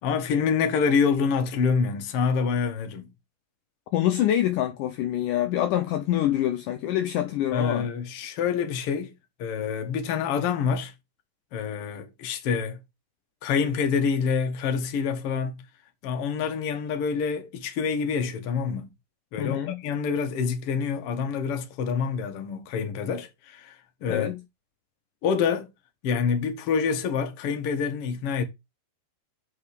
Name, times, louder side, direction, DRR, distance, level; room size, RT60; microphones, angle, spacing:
voice 1, 0.0-3.1 7.5-10.9 11.5-12.8 13.4-15.6 16.0-18.9 19.3-23.7 24.0-24.3 25.2-25.7 26.0-28.4, left 6 dB, 55° left, 1.7 m, -26 dB
voice 2, 3.9-7.9 19.4-19.8 24.1-24.4, left 12 dB, 75° left, 2.1 m, -25 dB
5.7 x 5.4 x 6.5 m
omnidirectional pair, 4.3 m